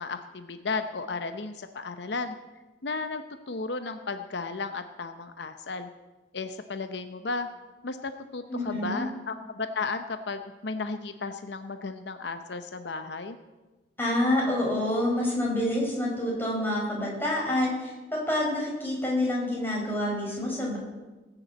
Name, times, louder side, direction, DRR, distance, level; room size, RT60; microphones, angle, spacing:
voice 1, 0.0-2.3 2.8-5.9 6.3-7.5 7.8-13.4, left 4 dB, 70° left, 8 dB, 0.8 m, -34 dB
voice 2, 8.5-9.0 14.0-20.8, left 1 dB, 10° left, -4 dB, 4.8 m, -27 dB
19.0 x 7.0 x 8.1 m, 1.2 s
head